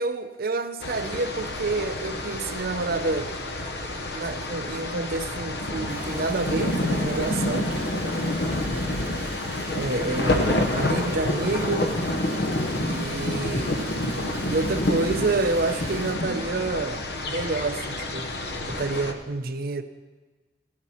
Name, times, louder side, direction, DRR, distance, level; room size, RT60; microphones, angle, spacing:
voice 1, 0.0-3.3 4.1-7.7 9.7-11.9 12.8-17.0 17.3-18.3 18.7-19.8, right 3 dB, 60° right, 9 dB, 0.7 m, -28 dB
sound 1, 0.8-19.1, left 1 dB, 65° left, 1.0 m, -28 dB
Stream, 5.9-16.1, right 3 dB, 15° right, 2.4 m, -43 dB
15.0 x 11.0 x 4.3 m, 1.3 s
head